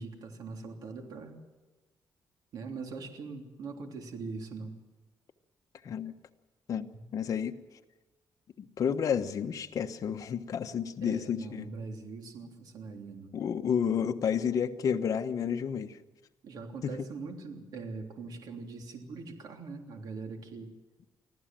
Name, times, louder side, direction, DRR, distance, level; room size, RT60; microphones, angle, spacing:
voice 1, 0.0-1.4 2.5-4.7 10.4-10.5 11.0-13.3 16.4-20.7, right 4 dB, 70° right, 3 dB, 3.3 m, -42 dB
voice 2, 7.1-7.5 8.6-11.7 13.3-16.0, left 7 dB, 55° left, 7 dB, 1.2 m, -30 dB
25.0 x 15.5 x 7.6 m, 1.2 s
cardioid pair, 135°, 7 cm